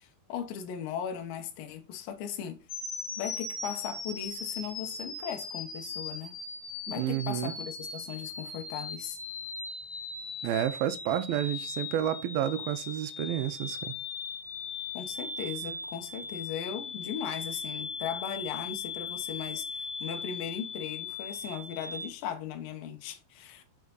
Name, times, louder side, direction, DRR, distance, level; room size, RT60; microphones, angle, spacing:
voice 1, 0.0-2.6 3.2-6.4 6.9-9.2 14.9-23.6, left 8 dB, 75° left, 2.5 m, -38 dB
sound 1, 2.7-22.1, left 4 dB, 40° left, 1.9 m, -39 dB
voice 2, 7.0-7.5 10.4-13.9, right 11 dB, 80° right, 2.5 m, -30 dB
6.5 x 4.7 x 3.9 m
omnidirectional pair, 4.3 m